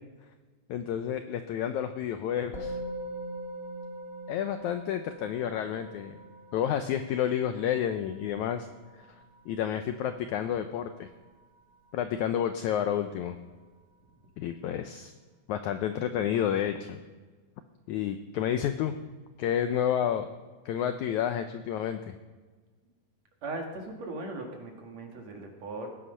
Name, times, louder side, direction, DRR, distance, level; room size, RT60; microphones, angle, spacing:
voice 1, 0.7-2.8 4.3-6.2 6.5-8.7 9.5-11.1 11.9-13.4 14.4-15.1 15.5-17.0 17.9-18.9 19.4-20.3 20.6-22.1, left 9 dB, 85° left, 8 dB, 1.7 m, -30 dB
Musical instrument, 2.5-12.1, right 1 dB, 30° left, 1.6 m, -43 dB
voice 2, 23.4-25.9, right 2 dB, 55° right, 1 dB, 2.8 m, -38 dB
18.5 x 8.8 x 5.5 m, 1.3 s
omnidirectional pair, 4.1 m